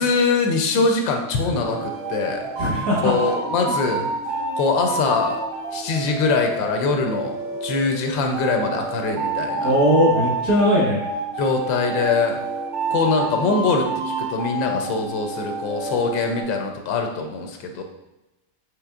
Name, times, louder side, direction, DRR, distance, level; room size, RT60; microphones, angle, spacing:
voice 1, 0.0-2.5 3.0-4.1 4.6-5.4 5.7-9.7 11.4-12.4 12.9-13.9 14.2-17.8, left 4 dB, 85° left, 4 dB, 1.3 m, -23 dB
sound 1, 1.6-16.4, right 2 dB, 80° right, 1.6 m, -29 dB
voice 2, 2.6-3.1 9.6-11.0, equal, 50° right, -5 dB, 1.7 m, -19 dB
6.0 x 3.1 x 2.4 m, 0.99 s
omnidirectional pair, 2.0 m